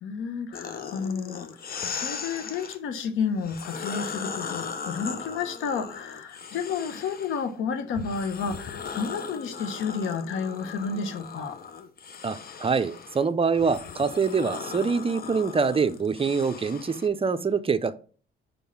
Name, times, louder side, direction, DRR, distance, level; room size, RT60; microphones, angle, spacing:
voice 1, 0.0-11.6, left 5 dB, 85° left, 1.1 m, -31 dB
sound 1, 0.5-2.8 3.4-7.5 7.9-17.1, left 6 dB, 50° left, 0.9 m, -38 dB
voice 2, 12.2-17.9, right 5 dB, 30° right, 0.7 m, -25 dB
5.2 x 4.8 x 5.9 m
cardioid pair, 90°, 20 cm